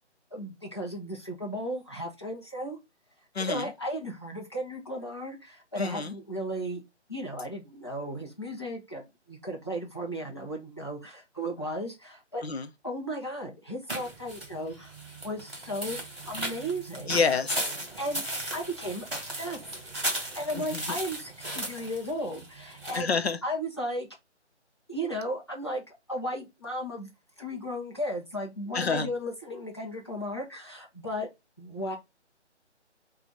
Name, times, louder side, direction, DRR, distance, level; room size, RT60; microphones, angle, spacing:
voice 1, 0.3-2.8 3.4-6.8 7.1-12.4 12.8-14.9 15.2-17.1 18.0-18.2 18.5-19.6 20.4-23.1 23.4-24.1 24.9-27.1 27.4-31.3 31.6-32.0, equal, 25° left, 0.7 m, -35 dB
voice 2, 3.3-3.7 5.8-6.1 12.4-12.7 17.1-17.7 20.5-21.0 22.9-23.4 28.7-29.1, left 5 dB, 60° left, 0.7 m, -28 dB
sound 1, 13.9-23.0, right 1 dB, 5° right, 1.5 m, -36 dB
4.7 x 2.4 x 3.8 m
hypercardioid pair, 180°, 35 cm